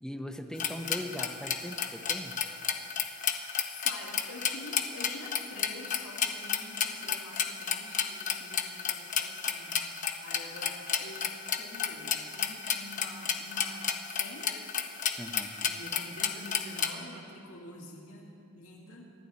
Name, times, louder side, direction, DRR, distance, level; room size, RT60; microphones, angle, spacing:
voice 1, 0.0-2.4 15.2-15.5, equal, 5° left, 4 dB, 0.8 m, -40 dB
sound 1, 0.6-16.9, left 7 dB, 35° left, 0.9 m, -31 dB
voice 2, 3.2-11.3 11.6-14.6 15.6-19.1, left 2 dB, 75° left, -2 dB, 2.1 m, -47 dB
25.5 x 11.5 x 4.2 m, 2.6 s
head